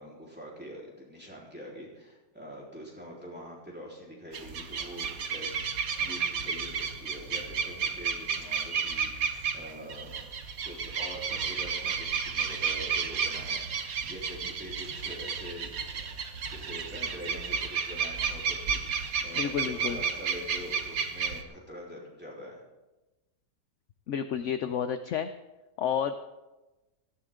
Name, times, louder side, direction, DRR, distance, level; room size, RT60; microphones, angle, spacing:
voice 1, 0.0-10.2 10.6-22.6, equal, 5° right, -4 dB, 3.9 m, -45 dB
sound 1, 4.3-21.4, right 6 dB, 60° right, 1.4 m, -32 dB
voice 2, 19.4-20.0 24.1-25.3 25.8-26.2, left 8 dB, 65° left, 10 dB, 0.8 m, -30 dB
17.0 x 14.0 x 3.7 m, 1.1 s
omnidirectional pair, 1.8 m